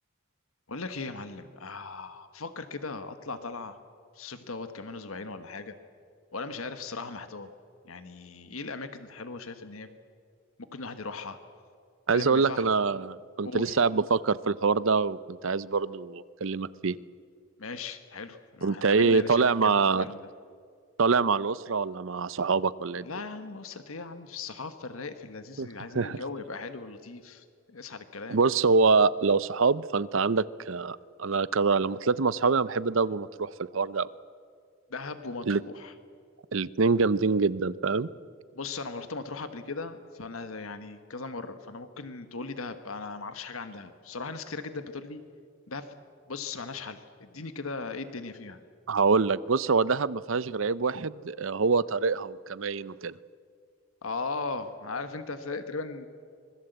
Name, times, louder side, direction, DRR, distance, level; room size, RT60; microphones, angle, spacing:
voice 1, 0.7-3.8 4.1-5.7 6.3-7.5 7.8-9.9 10.7-11.4 12.1-12.7 13.4-13.8 17.6-20.2 23.0-28.4 34.9-35.9 38.5-45.2 45.7-46.0 46.3-48.6 54.0-56.1, left 3 dB, 80° left, 9 dB, 1.3 m, -38 dB
voice 2, 12.1-17.0 18.6-20.1 21.0-23.1 25.6-25.7 25.9-26.2 28.3-34.1 35.5-35.6 36.5-38.1 48.9-53.1, right 4 dB, 70° right, 18 dB, 0.6 m, -25 dB
25.5 x 21.0 x 8.0 m, 2.2 s
head